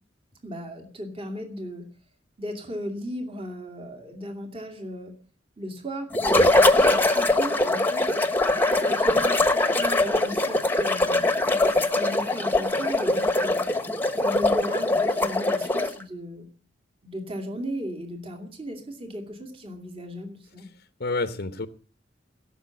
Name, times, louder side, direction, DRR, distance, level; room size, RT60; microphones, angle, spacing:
voice 1, 0.4-1.9 2.4-5.1 5.6-8.1 8.8-13.6 14.2-16.5 17.0-20.7, equal, 30° right, 3 dB, 2.5 m, -36 dB
sound 1, 6.1-16.0, left 2 dB, 10° left, 1.2 m, -22 dB
voice 2, 20.6-21.7, left 3 dB, 55° left, 10 dB, 0.8 m, -30 dB
17.0 x 7.1 x 9.2 m, 0.41 s
head